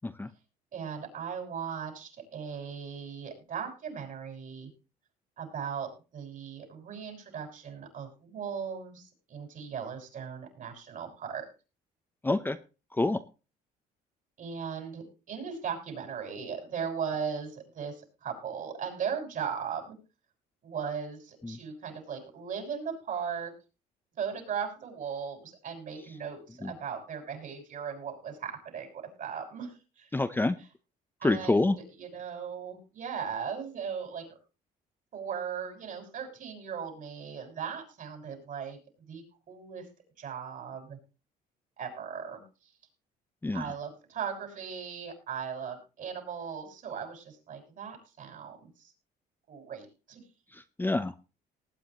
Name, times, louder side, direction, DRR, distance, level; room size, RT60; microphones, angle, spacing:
voice 1, 0.7-4.7 5.4-11.5 14.4-20.0 20.6-23.5 24.2-30.1 30.6-30.7 31.2-34.3 35.1-38.8 39.1-39.9 40.2-41.0 41.8-42.7 43.5-48.9 49.5-50.2, right 7 dB, 55° right, 4 dB, 6.2 m, -38 dB
voice 2, 12.2-12.6 13.0-13.2 21.5-21.6 26.6-26.7 30.1-30.5 31.2-31.7 43.4-43.6 50.8-51.1, left 2 dB, 10° left, 10 dB, 0.7 m, -26 dB
19.5 x 9.4 x 3.1 m, 0.31 s
cardioid pair, 110°, 17 cm